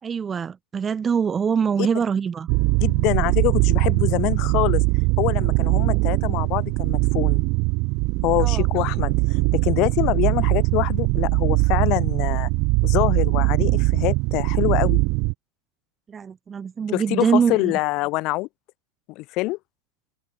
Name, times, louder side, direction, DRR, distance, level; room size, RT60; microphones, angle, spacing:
voice 1, 0.0-2.5 8.4-8.6 16.1-17.7, right 6 dB, 20° right, 3.6 m, -24 dB
sound 1, 2.5-15.3, right 28 dB, 45° right, 2.2 m, -21 dB
voice 2, 2.8-4.8 5.2-7.4 8.2-12.5 12.8-15.0 16.9-18.5 19.1-19.6, left 22 dB, 40° left, 7.6 m, -25 dB
open air
figure-of-eight pair, 90°, 0 cm